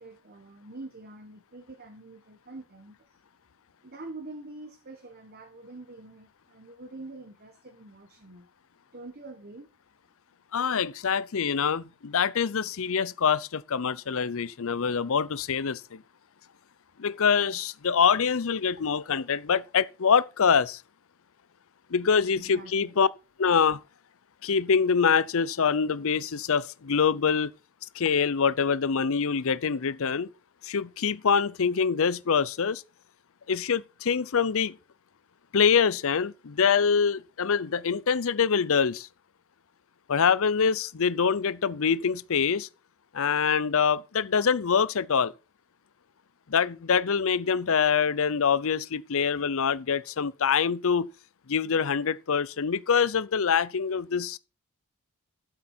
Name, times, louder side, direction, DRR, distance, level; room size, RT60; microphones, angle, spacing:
voice 1, 0.0-3.0 3.8-8.5 8.9-9.7 22.4-23.0, right 2 dB, 45° right, 1.4 m, -45 dB
voice 2, 10.5-16.0 17.0-20.8 21.9-23.1 23.4-23.8 24.4-27.5 27.9-30.3 30.6-32.8 33.5-34.8 35.5-39.1 40.1-42.7 43.1-45.3 46.5-51.1 51.5-54.4, left 6 dB, 65° left, 0.6 m, -25 dB
13.0 x 7.8 x 4.4 m
head